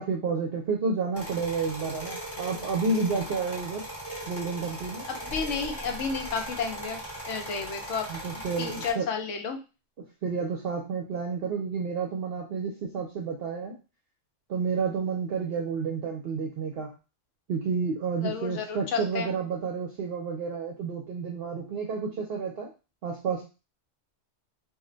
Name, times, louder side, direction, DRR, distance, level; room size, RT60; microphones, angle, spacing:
voice 1, 0.0-3.9 4.3-5.1 8.1-9.1 10.2-13.8 14.5-16.9 17.5-22.7 23.0-23.4, right 5 dB, 60° right, 0 dB, 0.7 m, -30 dB
sound 1, 1.1-8.9, right 1 dB, 15° left, 0.8 m, -39 dB
voice 2, 5.1-7.0 7.3-8.1 8.3-9.6 18.2-19.3, left 5 dB, 80° left, 5 dB, 1.0 m, -32 dB
sound 2, 5.3-6.9, left 1 dB, 55° left, 0.8 m, -44 dB
2.5 x 2.1 x 3.7 m, 0.30 s
omnidirectional pair, 1.2 m